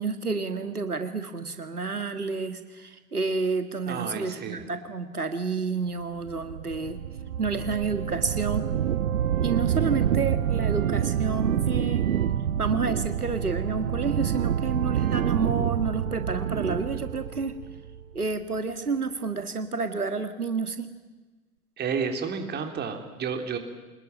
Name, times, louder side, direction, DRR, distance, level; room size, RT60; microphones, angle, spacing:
voice 1, 0.0-7.0 7.4-8.7 9.4-12.1 12.6-17.5 18.1-20.9, right 4 dB, 85° right, 8 dB, 1.9 m, -30 dB
voice 2, 3.9-4.6 21.8-23.6, right 6 dB, 25° right, 5 dB, 3.5 m, -31 dB
sound 1, 6.3-18.3, right 9 dB, 65° right, 1.2 m, -27 dB
26.5 x 21.0 x 9.1 m, 1.3 s
figure-of-eight pair, 95°, 44 cm